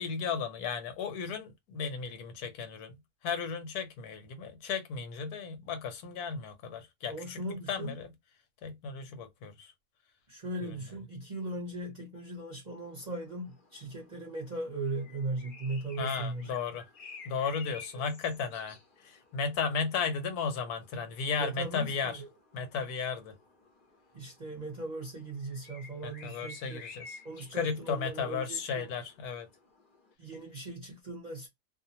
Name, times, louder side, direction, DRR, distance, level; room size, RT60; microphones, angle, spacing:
voice 1, 0.0-2.9 3.2-7.4 7.7-8.1 8.6-9.7 10.6-10.7 16.0-16.9 17.2-22.2 22.5-23.3 26.0-27.2 27.5-29.5, left 5 dB, 75° left, 1.2 m, -35 dB
voice 2, 7.1-7.9 10.3-16.5 17.9-18.0 21.4-22.3 24.1-26.8 27.2-28.9 30.2-31.5, right 2 dB, 35° right, 0.7 m, -38 dB
sound 1, 12.9-30.1, left 4 dB, 50° left, 0.6 m, -54 dB
2.7 x 2.0 x 2.7 m
omnidirectional pair, 1.6 m